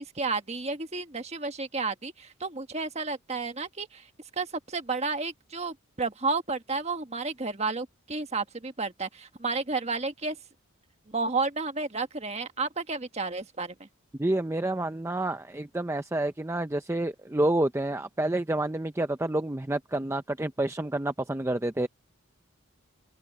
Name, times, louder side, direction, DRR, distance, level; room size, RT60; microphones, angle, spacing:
voice 1, 0.0-4.1 4.4-10.4 11.1-13.9, right 3 dB, 30° right, 1.5 m, -32 dB
voice 2, 14.2-21.9, right 1 dB, 10° right, 0.5 m, -28 dB
head